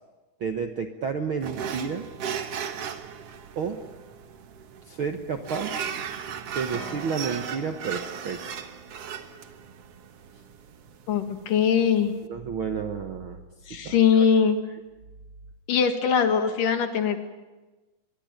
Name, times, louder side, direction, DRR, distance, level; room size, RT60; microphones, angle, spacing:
voice 1, 0.4-2.1 3.5-3.8 4.9-5.7 6.5-8.7 12.3-13.4 13.8-14.3, right 6 dB, 90° right, 6 dB, 1.1 m, -31 dB
sound 1, 1.4-12.3, right 8 dB, 55° right, 1.8 m, -37 dB
sound 2, 6.7-10.5, right 3 dB, 25° right, 4.2 m, -45 dB
voice 2, 11.1-12.1 13.7-14.6 15.7-17.2, left 7 dB, 60° left, 7 dB, 3.4 m, -21 dB
24.0 x 23.0 x 9.1 m, 1.2 s
omnidirectional pair, 4.4 m